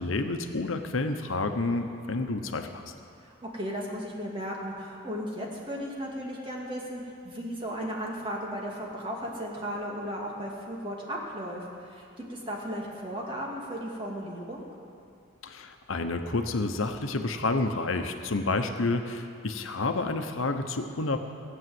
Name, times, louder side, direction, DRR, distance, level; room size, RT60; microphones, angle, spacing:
voice 1, 0.0-2.9 15.4-21.2, left 3 dB, 85° left, 6 dB, 1.0 m, -29 dB
voice 2, 3.2-14.7, equal, 25° right, -3 dB, 2.4 m, -35 dB
17.5 x 8.8 x 7.9 m, 2.5 s
head